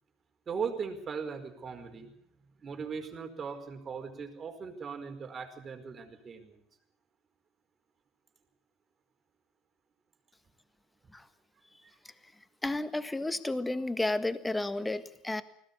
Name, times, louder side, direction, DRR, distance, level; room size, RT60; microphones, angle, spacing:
voice 1, 0.5-2.3 2.6-6.6, right 6 dB, 35° right, 4 dB, 5.0 m, -39 dB
voice 2, 12.6-15.4, left 2 dB, 10° left, 12 dB, 1.6 m, -32 dB
20.5 x 17.0 x 8.6 m, 0.70 s
hypercardioid pair, 75°, 0 cm